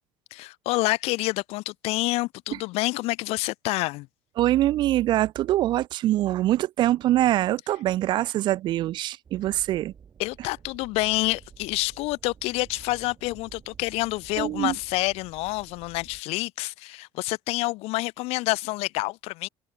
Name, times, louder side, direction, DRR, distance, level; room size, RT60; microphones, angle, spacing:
voice 1, 0.3-4.1 10.2-19.5, left 22 dB, 80° left, 0.8 m, -28 dB
voice 2, 4.4-9.9 14.4-14.8, right 14 dB, 50° right, 0.4 m, -24 dB
sound 1, 9.2-16.2, right 7 dB, 30° right, 1.8 m, -51 dB
cardioid pair, 165°, 10 cm